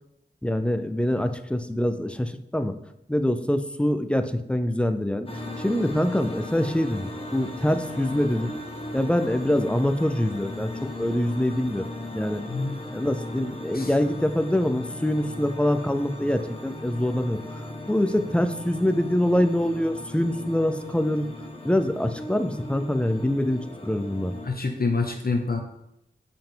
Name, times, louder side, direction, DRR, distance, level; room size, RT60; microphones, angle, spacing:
voice 1, 0.4-2.8 3.1-5.3 5.6-8.5 8.9-11.9 12.1-12.4 12.9-17.4 17.9-21.3 21.6-24.4, left 1 dB, 5° left, 9 dB, 0.5 m, -25 dB
sound 1, 5.3-24.5, left 1 dB, 30° left, 1.4 m, -38 dB
voice 2, 24.4-25.6, left 3 dB, 50° left, 3 dB, 0.8 m, -26 dB
6.8 x 5.5 x 3.8 m, 0.81 s
wide cardioid pair, 70°, 20 cm